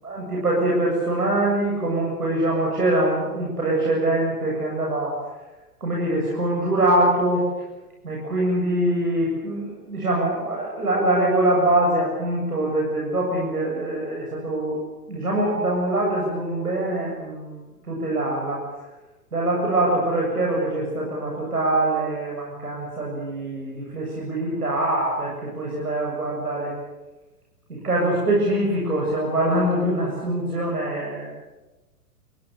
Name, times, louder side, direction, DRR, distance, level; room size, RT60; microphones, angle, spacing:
voice 1, 0.0-5.2 5.8-7.5 8.0-14.8 15.1-18.7 19.3-26.7 27.7-31.3, right 1 dB, 70° right, -2 dB, 7.6 m, -23 dB
28.5 x 20.5 x 6.8 m, 1.1 s
figure-of-eight pair, 110°, 46 cm